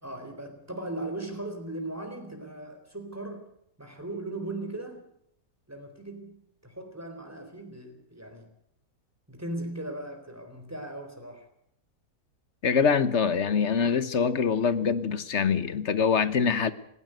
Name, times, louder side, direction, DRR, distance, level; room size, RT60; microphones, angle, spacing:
voice 1, 0.0-3.5 3.8-5.0 5.7-8.5 9.3-11.5, right 2 dB, 10° right, 4.0 m, -38 dB
voice 2, 12.6-16.7, left 6 dB, 50° left, 1.4 m, -24 dB
18.5 x 18.0 x 8.1 m
omnidirectional pair, 1.6 m